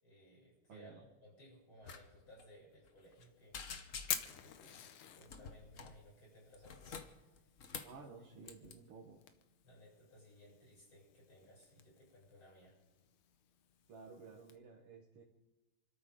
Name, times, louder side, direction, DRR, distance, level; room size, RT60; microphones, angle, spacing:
voice 1, 0.0-3.6 4.1-4.9 5.1-7.5 7.9-8.0 9.6-12.8, equal, 70° left, -4 dB, 8.6 m, -61 dB
voice 2, 0.7-1.1 7.8-9.2 13.9-15.2, right 4 dB, 90° right, -1 dB, 2.4 m, -54 dB
sound 1, 1.8-2.0 2.3-2.4 2.9-3.2 3.5-4.4 5.3-6.0 6.5-8.0 8.4-8.7, left 5 dB, 45° left, 1.1 m, -48 dB
Fire, 3.0-14.6, left 9 dB, 85° left, 1.9 m, -50 dB
28.5 x 13.0 x 3.9 m, 1.1 s
omnidirectional pair, 2.4 m